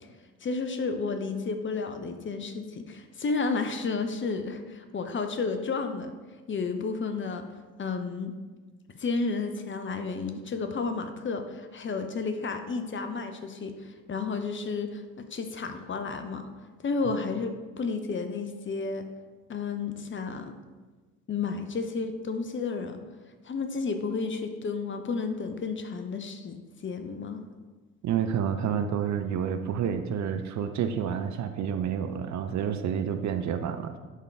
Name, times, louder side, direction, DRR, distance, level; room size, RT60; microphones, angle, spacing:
voice 1, 0.4-6.1 6.5-7.4 7.8-8.3 8.9-16.5 16.8-19.1 19.5-20.5 21.3-23.0 23.4-27.4, left 4 dB, 30° left, 7 dB, 0.7 m, -32 dB
voice 2, 28.0-34.0, right 8 dB, 45° right, 8 dB, 0.6 m, -29 dB
10.5 x 3.7 x 3.5 m, 1.3 s
hypercardioid pair, 55°, 39 cm